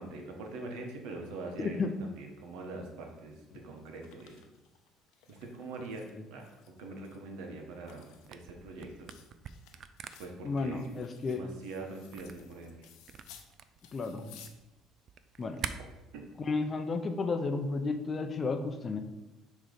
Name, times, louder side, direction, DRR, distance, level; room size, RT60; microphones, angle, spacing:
voice 1, 0.0-4.4 5.3-6.4 6.8-9.1 10.2-10.9 11.3-12.9 16.1-16.2, right 2 dB, 85° right, 2 dB, 1.2 m, -43 dB
voice 2, 1.6-1.9 6.1-6.2 10.4-11.4 13.9-14.4 15.4-15.6 16.4-19.0, left 3 dB, 30° left, 7 dB, 0.6 m, -32 dB
sound 1, 3.5-6.1 6.4-7.2 7.6-13.5 13.8-14.5, left 9 dB, 80° left, 0.6 m, -57 dB
Camera, 8.2-15.7, right 8 dB, 45° right, 0.3 m, -45 dB
6.1 x 3.1 x 5.1 m, 1.0 s
cardioid pair, 130°, 0 cm